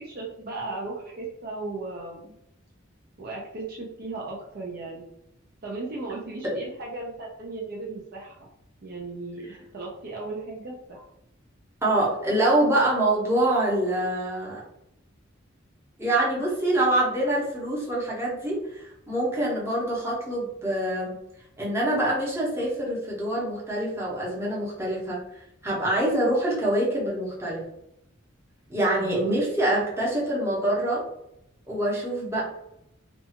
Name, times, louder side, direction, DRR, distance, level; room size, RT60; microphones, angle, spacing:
voice 1, 0.0-2.3 3.2-5.0 5.6-8.4 8.8-11.0 29.0-29.4, right 3 dB, 50° right, -2 dB, 0.5 m, -35 dB
voice 2, 11.8-14.6 16.0-21.2 21.6-27.6 28.7-31.0 31.7-32.4, right 1 dB, 15° right, -5 dB, 0.8 m, -25 dB
2.6 x 2.3 x 2.8 m, 0.81 s
head